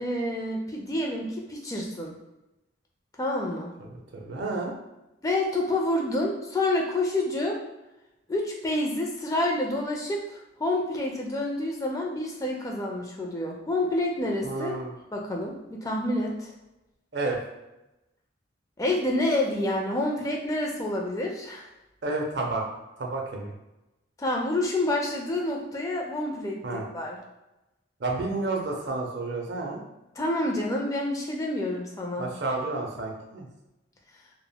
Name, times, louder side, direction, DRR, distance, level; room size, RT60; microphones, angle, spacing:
voice 1, 0.0-2.2 3.2-3.7 5.2-7.6 8.3-14.8 15.1-16.5 18.8-21.7 24.2-26.6 26.9-27.2 30.2-32.3, left 1 dB, 15° left, -1 dB, 0.3 m, -28 dB
voice 2, 4.2-4.7 14.4-14.9 17.1-17.4 22.0-22.6 23.0-23.5 26.6-26.8 28.0-29.8 32.2-33.5, right 3 dB, 55° right, 0 dB, 0.5 m, -30 dB
3.4 x 2.0 x 2.2 m, 0.97 s
head